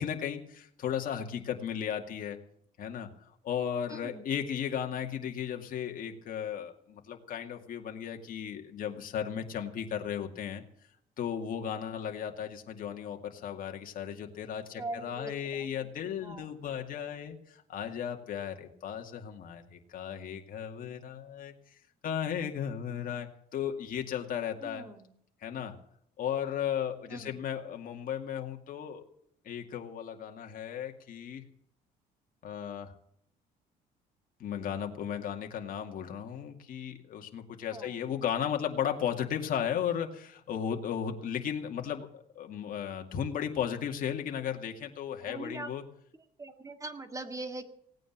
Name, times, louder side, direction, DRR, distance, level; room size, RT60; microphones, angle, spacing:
voice 1, 0.0-2.4 2.8-10.6 11.2-21.8 22.0-24.8 25.4-25.7 26.2-29.0 29.4-31.4 32.4-32.9 34.4-45.8, left 8 dB, 55° left, 4 dB, 2.3 m, -35 dB
voice 2, 3.9-4.3 14.8-15.3 15.6-15.9 16.2-16.4 24.6-25.1 27.1-27.4 37.7-37.9 45.2-45.7 46.4-47.6, right 2 dB, 20° right, 7 dB, 1.9 m, -41 dB
17.5 x 9.2 x 7.4 m, 0.69 s
cardioid pair, 110°, 17 cm